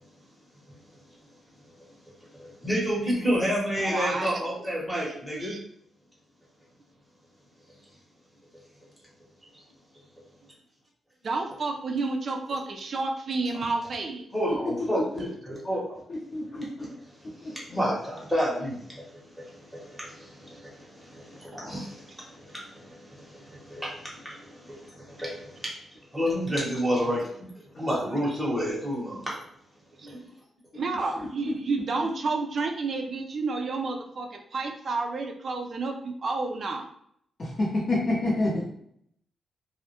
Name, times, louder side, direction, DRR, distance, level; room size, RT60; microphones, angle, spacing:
voice 1, 2.4-5.6 14.3-16.0 17.2-25.7 26.1-29.3 30.0-30.2, equal, ahead, -5 dB, 0.9 m, -30 dB
voice 2, 3.8-4.4 5.4-5.6 11.2-14.2 27.9-28.1 28.6-28.8 30.0-30.1 30.7-36.9, right 3 dB, 50° right, 3 dB, 0.4 m, -30 dB
voice 3, 16.1-16.9 17.4-17.5 31.5-31.6 37.4-38.6, left 2 dB, 40° left, -6 dB, 0.6 m, -28 dB
2.1 x 2.0 x 2.8 m, 0.69 s
cardioid pair, 120°, 0 cm